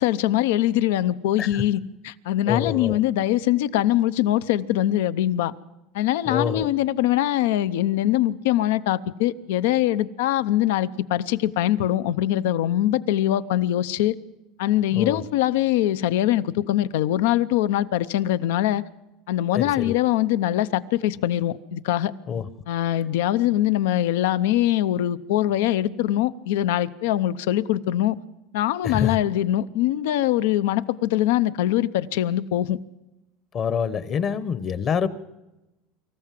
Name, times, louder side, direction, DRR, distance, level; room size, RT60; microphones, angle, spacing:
voice 1, 0.0-5.5 5.9-14.1 14.6-18.8 19.3-22.1 22.7-28.2 28.5-32.8, left 13 dB, 80° left, 0.7 m, -22 dB
voice 2, 2.5-3.0 6.3-6.7 14.9-15.2 19.5-20.0 22.3-22.5 28.8-29.2 33.5-35.1, left 7 dB, 35° left, 1.0 m, -26 dB
25.0 x 14.5 x 7.6 m
supercardioid pair, 135°, 0 cm